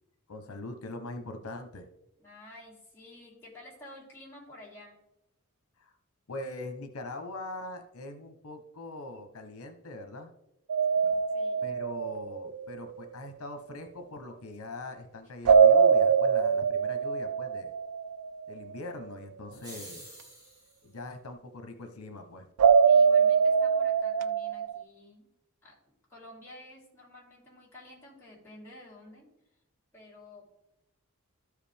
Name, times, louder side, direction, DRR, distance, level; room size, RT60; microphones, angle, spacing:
voice 1, 0.3-1.9 5.8-6.0 6.3-10.3 11.6-17.7 18.5-20.1 20.8-22.5, left 2 dB, 80° left, 6 dB, 0.9 m, -42 dB
voice 2, 2.2-5.0 11.3-11.7 22.9-25.3 25.6-25.7 26.1-29.3 29.9-30.4, left 1 dB, 10° left, -5 dB, 2.7 m, -51 dB
sound 1, 10.7-12.8 15.4-18.3 22.6-24.8, right 6 dB, 80° right, 0.3 m, -23 dB
sound 2, 19.5-20.8, right 1 dB, 20° right, 2.8 m, -48 dB
13.0 x 4.9 x 3.5 m, 0.88 s
head